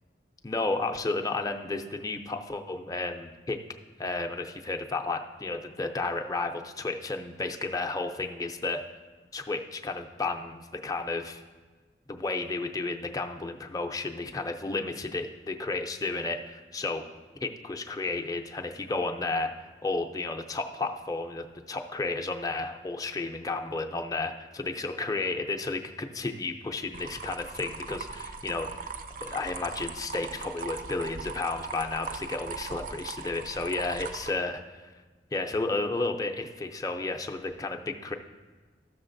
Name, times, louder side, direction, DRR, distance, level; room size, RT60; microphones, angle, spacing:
voice 1, 0.4-3.6 4.0-8.8 9.3-11.4 12.1-17.0 17.4-28.9 29.2-34.6 35.3-38.1, left 3 dB, 20° left, 4 dB, 0.4 m, -32 dB
sound 1, 26.9-34.3, right 4 dB, 50° right, 0.4 m, -39 dB
13.5 x 6.4 x 2.6 m, 1.4 s
head